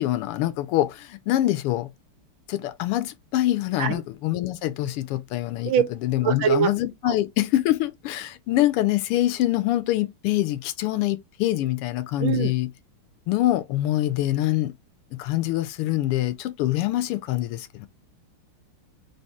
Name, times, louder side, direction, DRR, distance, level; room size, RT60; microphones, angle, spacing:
voice 1, 0.0-1.9 2.5-12.7 13.3-14.7 15.1-17.9, left 15 dB, 90° left, 1.6 m, -25 dB
voice 2, 6.2-6.7 7.1-7.2 12.2-12.5, right 8 dB, 70° right, 1.3 m, -22 dB
4.1 x 3.5 x 3.5 m
omnidirectional pair, 2.4 m